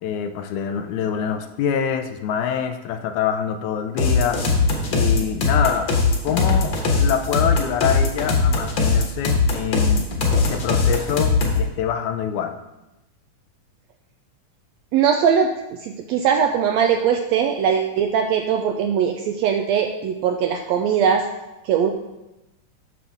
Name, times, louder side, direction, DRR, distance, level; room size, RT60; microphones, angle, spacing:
voice 1, 0.0-4.4 4.9-5.9 6.2-12.5, left 8 dB, 80° left, 7 dB, 2.0 m, -25 dB
sound 1, 4.0-11.7, left 4 dB, 50° left, 1.6 m, -19 dB
voice 2, 14.9-15.5 15.8-21.2 21.6-21.9, right 7 dB, 85° right, 4 dB, 1.5 m, -20 dB
9.8 x 6.8 x 3.5 m, 0.96 s
omnidirectional pair, 3.5 m